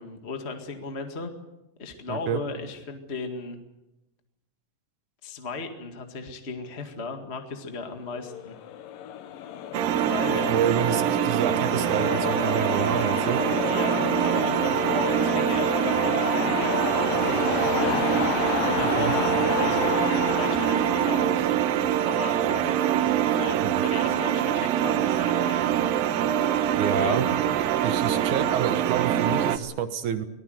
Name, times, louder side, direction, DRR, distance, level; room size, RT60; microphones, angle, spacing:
voice 1, 0.0-1.3 1.8-3.6 5.2-8.5 9.9-10.5 11.8-12.1 13.6-18.1 18.7-21.5 22.0-25.6 27.0-27.5, left 3 dB, 25° left, 5 dB, 1.5 m, -36 dB
voice 2, 2.1-2.4 10.5-13.4 19.0-19.1 23.6-23.8 26.8-27.3 27.8-30.3, right 8 dB, 65° right, 9 dB, 2.6 m, -28 dB
sound 1, 8.1-22.4, left 10 dB, 80° left, 2.9 m, -31 dB
sound 2, 9.7-29.6, right 10 dB, 85° right, 2.7 m, -24 dB
24.5 x 19.0 x 7.9 m, 0.95 s
omnidirectional pair, 3.9 m